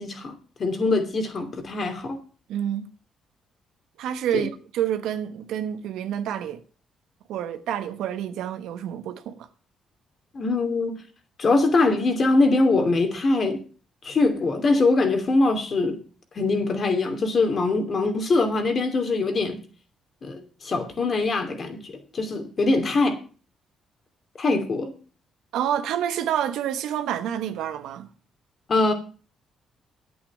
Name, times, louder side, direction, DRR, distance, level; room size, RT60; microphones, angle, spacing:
voice 1, 0.0-2.2 4.3-4.5 10.3-11.0 11.4-13.6 14.0-16.0 16.3-19.6 20.2-23.2 24.4-24.9 28.7-28.9, left 3 dB, 45° left, 2.8 m, -23 dB
voice 2, 2.5-2.9 4.0-6.6 7.3-9.5 25.5-28.1, right 10 dB, 85° right, 1.2 m, -28 dB
9.1 x 8.5 x 7.3 m
cardioid pair, 90°, 0 cm